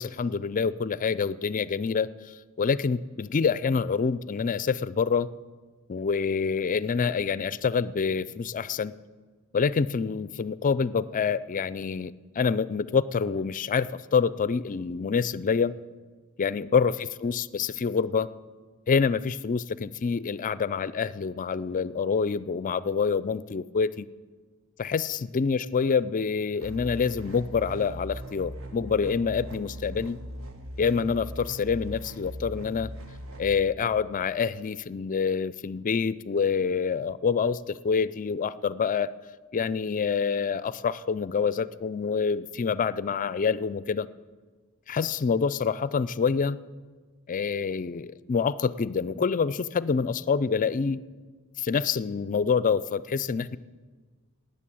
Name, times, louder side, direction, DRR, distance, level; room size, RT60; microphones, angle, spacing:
voice 1, 0.0-2.1 2.6-5.3 5.9-8.9 9.5-15.7 16.4-18.3 18.9-24.1 24.8-30.2 30.8-32.9 33.4-39.1 39.5-44.1 44.9-46.6 47.3-51.0 51.6-53.6, left 5 dB, 35° left, 17 dB, 0.4 m, -26 dB
sound 1, 26.6-33.6, equal, 65° right, 1.5 m, -40 dB
18.5 x 6.9 x 8.6 m, 1.4 s
head